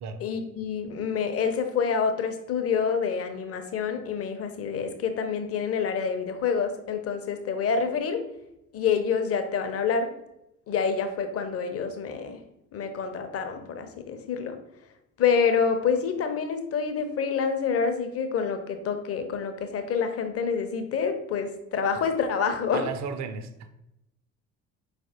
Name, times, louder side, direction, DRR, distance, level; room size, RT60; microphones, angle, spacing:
voice 1, 0.2-8.2 8.7-10.1 10.7-12.4 12.7-14.6 15.2-22.8, left 6 dB, 35° left, 7 dB, 0.7 m, -27 dB
voice 2, 22.7-23.7, right 5 dB, 40° right, 10 dB, 0.5 m, -34 dB
4.5 x 3.3 x 2.8 m, 0.84 s
figure-of-eight pair, 55°, 43 cm